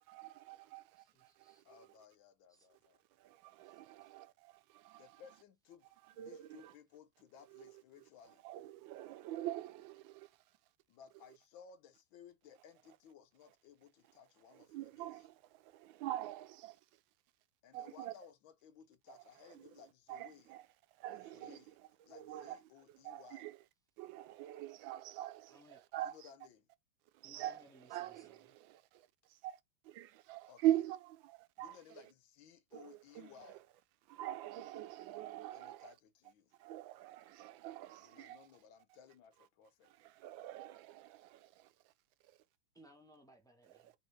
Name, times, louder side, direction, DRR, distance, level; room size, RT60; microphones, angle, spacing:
voice 1, 0.0-1.9 3.2-5.2 6.2-6.7 7.5-7.8 8.4-10.3 14.5-16.8 17.7-18.1 19.1-19.2 19.5-19.7 20.1-20.6 20.9-21.6 22.1-22.6 23.0-23.6 24.0-26.3 27.1-31.8 32.7-33.6 34.1-35.9 36.6-38.5 39.8-41.9 42.3-42.4 43.8-43.9, right 13 dB, 80° right, 1.3 m, -43 dB
voice 2, 1.0-1.6 2.5-2.7 3.6-4.1 25.5-25.9 27.2-28.5 42.7-43.9, equal, 5° left, 0.5 m, -64 dB
voice 3, 1.6-3.0 5.0-5.9 6.1-8.4 10.9-15.2 17.6-20.5 21.0-21.7 22.1-23.5 26.0-26.7 30.5-30.6 31.6-33.6 35.5-36.5 38.0-39.9, left 8 dB, 80° left, 1.6 m, -60 dB
3.9 x 2.9 x 3.2 m
omnidirectional pair, 2.1 m